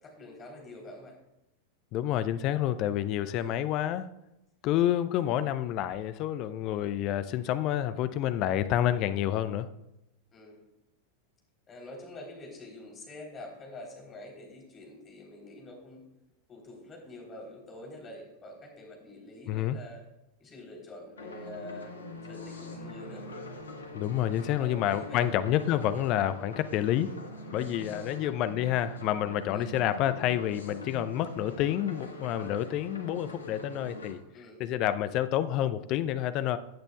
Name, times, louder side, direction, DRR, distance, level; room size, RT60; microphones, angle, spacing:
voice 1, 0.0-1.1 3.3-3.6 10.3-10.6 11.7-16.0 16.5-20.0 20.4-23.3 24.4-25.4 27.8-28.1 29.5-29.7 34.3-34.6, left 2 dB, 25° left, 0 dB, 3.5 m, -46 dB
voice 2, 1.9-4.1 4.6-9.7 19.5-19.8 23.9-27.1 27.5-34.2 34.6-36.6, left 12 dB, 40° left, 13 dB, 0.5 m, -28 dB
sound 1, 21.2-34.1, left 1 dB, 75° left, 1.4 m, -43 dB
15.0 x 9.0 x 2.3 m, 0.91 s
figure-of-eight pair, 90°, 0 cm